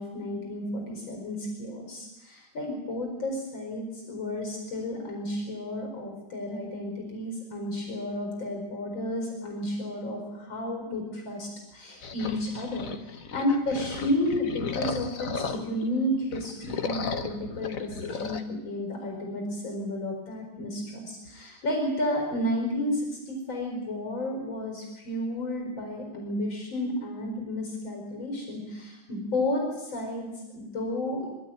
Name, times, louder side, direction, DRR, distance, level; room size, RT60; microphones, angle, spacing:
voice 1, 0.0-31.3, left 1 dB, 85° left, 2 dB, 5.4 m, -32 dB
sound 1, 12.0-15.9 16.2-18.4, left 5 dB, 50° left, 1.5 m, -35 dB
24.0 x 12.5 x 9.1 m, 1.0 s
omnidirectional pair, 2.1 m